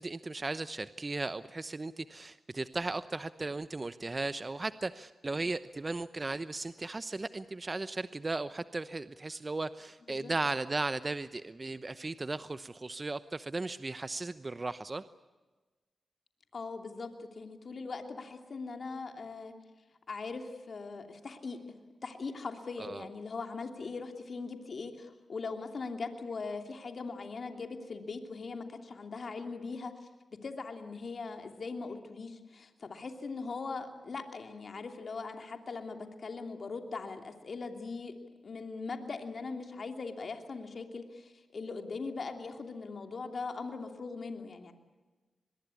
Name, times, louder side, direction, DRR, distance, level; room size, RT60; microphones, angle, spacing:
voice 1, 0.0-15.0 22.8-23.1, right 3 dB, 35° right, 13 dB, 0.9 m, -36 dB
voice 2, 16.5-19.5 20.1-21.6 22.0-38.1 38.4-44.7, left 4 dB, 60° left, 5 dB, 2.9 m, -40 dB
24.5 x 21.5 x 8.5 m, 1.3 s
cardioid pair, 45°, 0 cm